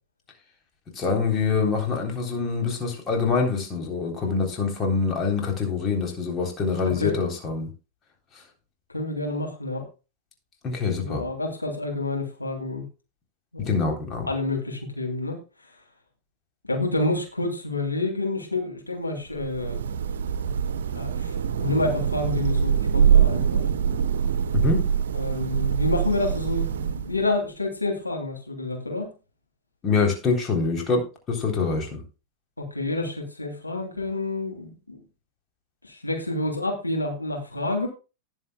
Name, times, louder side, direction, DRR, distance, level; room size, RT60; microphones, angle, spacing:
voice 1, 1.0-7.7 8.4-8.5 10.6-11.2 13.6-14.3 24.5-24.9 29.8-32.0, left 4 dB, 25° left, 2 dB, 3.7 m, -25 dB
voice 2, 8.9-9.8 11.0-12.8 13.5-13.7 14.3-15.4 16.7-19.8 20.9-21.3 21.6-23.7 25.1-29.1 32.6-35.0 35.8-37.9, left 2 dB, 85° left, 0 dB, 3.1 m, -28 dB
Thunder / Rain, 19.3-27.3, right 8 dB, 60° right, 1.0 m, -24 dB
19.0 x 7.4 x 2.3 m, 0.30 s
figure-of-eight pair, 90°, 0 cm